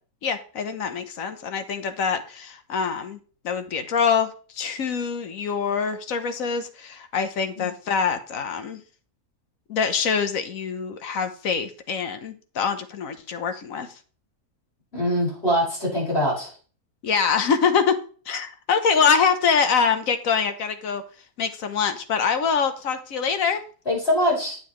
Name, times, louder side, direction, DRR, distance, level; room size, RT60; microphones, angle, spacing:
voice 1, 0.2-3.2 3.4-8.8 9.7-13.9 17.0-18.0 18.3-21.0 21.4-23.6, left 6 dB, 65° left, 9 dB, 1.2 m, -24 dB
voice 2, 14.9-16.5 23.9-24.6, equal, 40° left, -5 dB, 5.8 m, -23 dB
9.1 x 7.8 x 3.1 m, 0.39 s
omnidirectional pair, 1.6 m